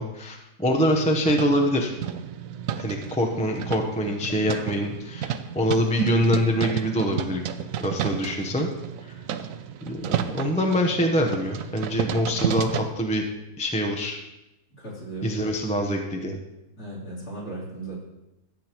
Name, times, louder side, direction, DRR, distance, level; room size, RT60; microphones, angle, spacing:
voice 1, 0.0-1.9 2.8-7.4 7.8-8.7 9.8-13.2 13.6-14.2 15.2-16.4, equal, 5° left, 2 dB, 0.6 m, -24 dB
sound 1, 0.7-12.9, right 8 dB, 70° right, 0.9 m, -32 dB
voice 2, 14.8-15.4 16.8-18.0, right 2 dB, 60° left, -7 dB, 4.0 m, -36 dB
13.5 x 8.4 x 3.0 m, 0.94 s
omnidirectional pair, 1.7 m